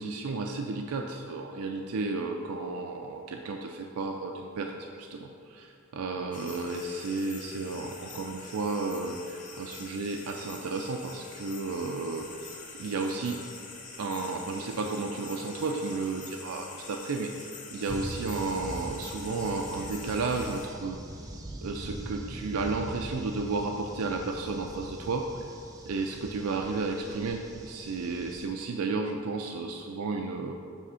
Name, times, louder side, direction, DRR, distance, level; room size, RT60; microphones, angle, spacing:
voice 1, 0.0-12.5 12.8-13.4 14.0-17.3 17.7-21.0 21.6-25.2 25.9-30.5, right 3 dB, 90° right, 3 dB, 0.4 m, -33 dB
sound 1, 6.3-20.7, left 4 dB, 35° left, 0.7 m, -45 dB
sound 2, 17.9-28.5, right 1 dB, 15° right, 0.5 m, -42 dB
7.4 x 3.5 x 5.6 m, 2.5 s
head